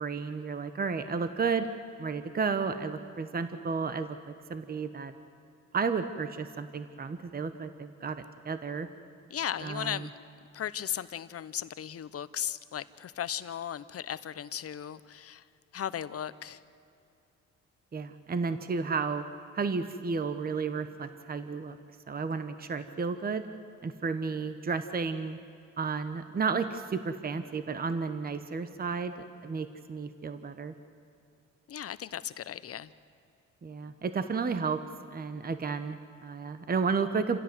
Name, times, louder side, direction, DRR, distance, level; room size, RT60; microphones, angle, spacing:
voice 1, 0.0-1.7 2.0-4.2 4.5-5.1 5.7-8.9 9.6-10.1 17.9-19.2 19.5-21.8 22.1-23.4 23.8-25.4 25.8-29.1 29.4-30.7 33.6-34.8 35.1-37.4, right 5 dB, 30° right, 10 dB, 1.1 m, -32 dB
voice 2, 9.3-10.1 10.5-15.4 15.7-16.6 31.7-32.9, left 9 dB, 50° left, 14 dB, 0.9 m, -36 dB
28.0 x 16.0 x 7.9 m, 2.6 s
cardioid pair, 90°, 30 cm